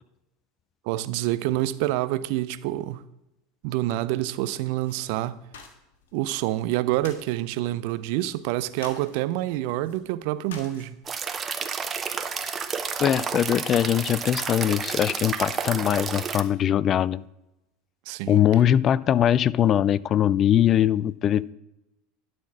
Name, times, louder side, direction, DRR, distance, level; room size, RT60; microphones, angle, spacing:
voice 1, 0.9-3.0 3.6-5.4 6.1-11.0 18.1-18.4, right 15 dB, 65° right, 0.5 m, -27 dB
sound 1, 4.8-11.4, left 5 dB, 75° left, 1.5 m, -50 dB
sound 2, 11.1-16.4, right 6 dB, 30° right, 0.8 m, -30 dB
voice 2, 13.0-17.2 18.3-21.5, left 10 dB, 40° left, 0.3 m, -21 dB
11.5 x 4.2 x 6.0 m
hypercardioid pair, 85°, 0 cm